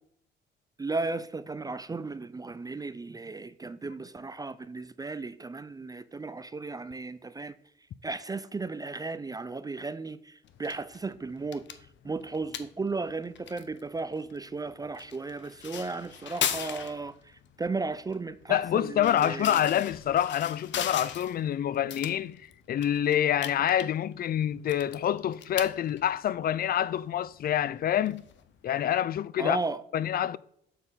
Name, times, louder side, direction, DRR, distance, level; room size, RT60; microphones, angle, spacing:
voice 1, 0.8-7.5 8.0-19.6 29.4-29.8, right 3 dB, 20° right, 0.4 m, -35 dB
sound 1, 10.4-28.8, left 9 dB, 65° left, 0.8 m, -40 dB
voice 2, 18.5-28.2 28.6-29.6 29.9-30.4, left 10 dB, 50° left, 0.4 m, -27 dB
7.1 x 4.2 x 5.5 m
cardioid pair, 90°, 20 cm